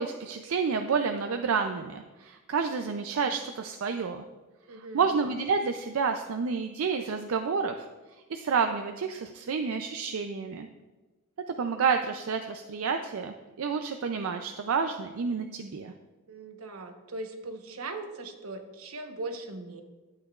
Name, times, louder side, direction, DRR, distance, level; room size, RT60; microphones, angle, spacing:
voice 1, 0.0-4.2 4.7-7.8 8.1-10.7 11.6-15.9, right 5 dB, 70° right, 6 dB, 0.4 m, -29 dB
voice 2, 4.7-5.2 16.3-19.8, right 2 dB, 85° right, 5 dB, 1.0 m, -39 dB
12.5 x 8.6 x 2.4 m, 1.2 s
head